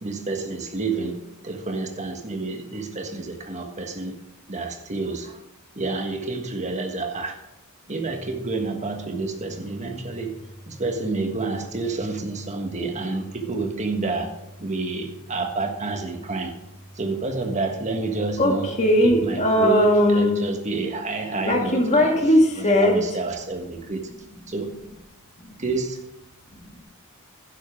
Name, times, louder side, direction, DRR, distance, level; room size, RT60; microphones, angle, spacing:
voice 1, 0.0-1.2 1.4-4.2 4.5-5.4 5.7-7.4 7.9-10.4 10.7-16.5 16.9-18.7 19.0-22.1 22.6-24.1 24.5-24.7 25.6-26.0, right 3 dB, 35° right, 5 dB, 1.5 m, -29 dB
voice 2, 18.4-20.4 21.5-23.0 25.4-25.6 26.5-26.8, left 1 dB, 35° left, 2 dB, 1.8 m, -19 dB
11.5 x 10.0 x 3.6 m, 0.91 s
head